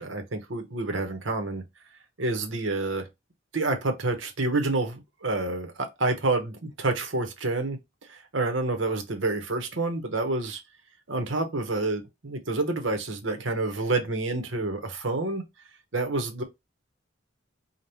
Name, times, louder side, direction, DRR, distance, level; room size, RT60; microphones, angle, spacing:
voice 1, 0.0-1.6 2.2-3.1 3.5-7.8 8.1-10.6 11.1-15.4 15.9-16.4, right 2 dB, 70° right, 1.1 m, -28 dB
5.2 x 2.4 x 2.9 m
head